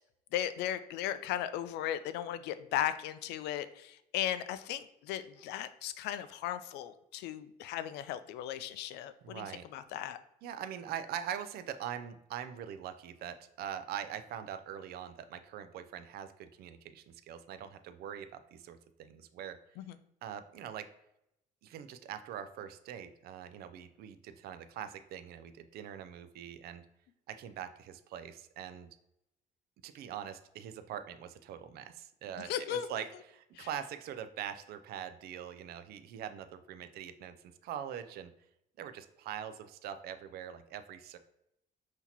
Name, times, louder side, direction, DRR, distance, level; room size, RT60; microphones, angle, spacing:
voice 1, 0.3-9.5 9.7-10.2 19.8-20.0 32.4-32.9 33.6-33.7, left 11 dB, 85° left, 13 dB, 0.4 m, -36 dB
voice 2, 9.2-9.6 10.4-19.6 20.2-20.9 21.6-26.8 27.3-28.9 29.8-38.3 38.8-41.2, right 9 dB, 65° right, 10 dB, 0.4 m, -43 dB
5.8 x 2.8 x 2.9 m, 0.81 s
cardioid pair, 110°, 17 cm